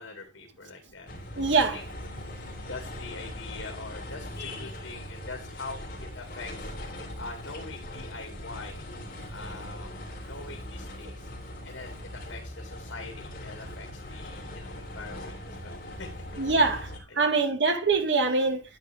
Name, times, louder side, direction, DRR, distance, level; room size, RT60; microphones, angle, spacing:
voice 1, 0.0-1.8 2.2-6.7 7.2-8.8 9.3-11.3 11.6-16.2 16.5-16.8 17.1-17.3, left 3 dB, 75° left, 2.4 m, -44 dB
sound 1, 1.1-17.0, left 1 dB, 45° left, 3.5 m, -40 dB
voice 2, 1.4-1.8 16.4-18.6, right 3 dB, 65° right, 1.9 m, -24 dB
11.0 x 8.9 x 3.5 m
head